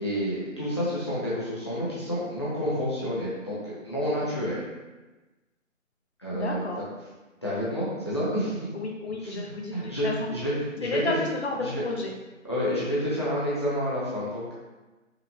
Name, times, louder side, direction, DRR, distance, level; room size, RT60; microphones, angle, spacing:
voice 1, 0.0-4.6 6.2-6.6 7.4-8.6 9.2-10.5 10.9-11.0 11.6-11.8 12.4-14.5, equal, 20° left, -10 dB, 0.6 m, -29 dB
voice 2, 6.3-6.9 8.7-10.3 10.8-12.1, left 2 dB, 55° left, 0 dB, 0.8 m, -32 dB
4.8 x 3.5 x 2.2 m, 1.2 s
figure-of-eight pair, 150°, 39 cm